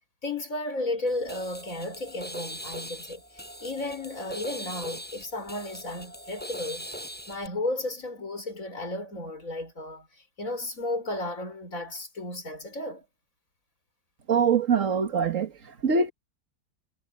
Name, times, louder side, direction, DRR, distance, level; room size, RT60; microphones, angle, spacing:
voice 1, 0.2-6.9 7.3-10.1 10.4-13.0, left 2 dB, 50° left, 5.9 m, -33 dB
sound 1, 1.1-7.5, equal, 5° left, 6.6 m, -41 dB
voice 2, 14.3-16.1, right 5 dB, 50° right, 1.9 m, -24 dB
omnidirectional pair, 1.8 m